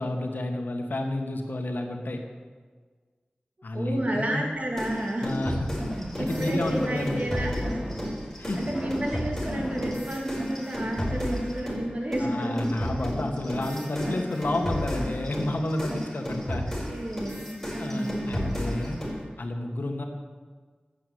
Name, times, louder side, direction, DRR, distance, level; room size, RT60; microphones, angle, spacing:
voice 1, 0.0-2.2 3.6-4.5 5.2-5.7 6.2-7.2 8.4-8.6 12.2-16.6 17.8-19.0 19.4-20.0, left 1 dB, 75° left, 3 dB, 1.9 m, -30 dB
voice 2, 3.7-5.3 6.2-7.7 8.6-13.1 14.7-14.8 16.9-18.6, right 1 dB, 45° right, 0 dB, 2.9 m, -31 dB
sound 1, 4.8-11.8 12.1-19.2, equal, 10° left, 5.2 m, -32 dB
sound 2, 5.8-10.9, equal, 15° right, 4.0 m, -38 dB
13.0 x 8.4 x 8.7 m, 1.5 s
wide cardioid pair, 65°, 3 cm